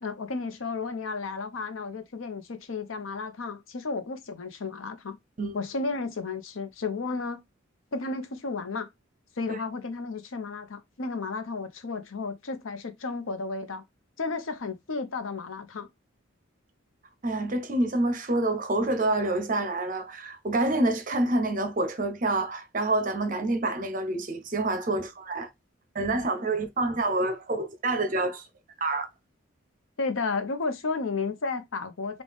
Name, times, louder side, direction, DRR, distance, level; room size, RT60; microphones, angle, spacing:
voice 1, 0.0-5.2 5.5-7.4 7.9-8.9 9.4-13.8 14.2-15.9 30.0-32.2, left 4 dB, 80° left, 0.8 m, -33 dB
voice 2, 17.2-25.5 25.9-28.4 28.8-29.1, right 2 dB, 40° right, 0.7 m, -27 dB
3.9 x 2.4 x 3.4 m
head